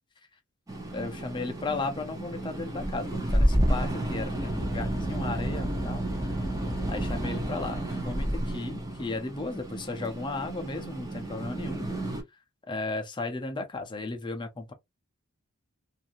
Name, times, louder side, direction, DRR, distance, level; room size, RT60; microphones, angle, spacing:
sound 1, 0.7-12.2, right 1 dB, 15° right, 0.7 m, -30 dB
voice 1, 0.9-6.0 6.9-11.8 12.7-14.7, left 3 dB, 20° left, 0.5 m, -35 dB
2.5 x 2.5 x 2.7 m
head